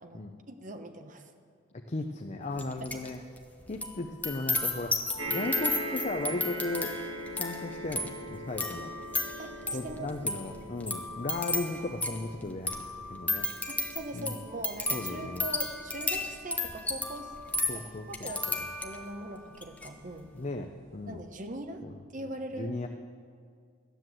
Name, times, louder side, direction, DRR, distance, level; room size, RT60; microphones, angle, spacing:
voice 1, 0.0-1.3 9.4-10.1 13.7-20.3 21.1-21.8 22.1-22.8, right 2 dB, 40° right, 6 dB, 1.0 m, -41 dB
voice 2, 1.9-3.2 3.7-5.0 5.3-6.9 7.3-8.9 9.7-13.5 14.1-14.4 14.9-15.5 17.7-18.6 20.3-21.2 21.8-22.0 22.5-22.9, left 2 dB, 35° left, 4 dB, 0.6 m, -36 dB
sound 1, 2.6-3.1 3.4-19.1 19.5-19.9, left 2 dB, 10° left, 1.0 m, -34 dB
sound 2, 5.2-19.7 20.5-20.6 20.8-20.9, right 1 dB, 80° right, 2.5 m, -42 dB
13.5 x 10.0 x 7.7 m, 2.2 s
head